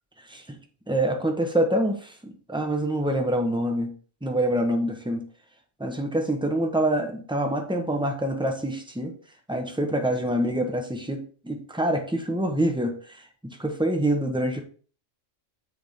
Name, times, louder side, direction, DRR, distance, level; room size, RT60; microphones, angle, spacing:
voice 1, 0.9-3.9 4.2-5.2 5.8-9.1 9.5-12.9 13.4-14.6, right 1 dB, 5° right, 3 dB, 0.9 m, -26 dB
6.8 x 3.5 x 5.8 m, 0.41 s
omnidirectional pair, 1.3 m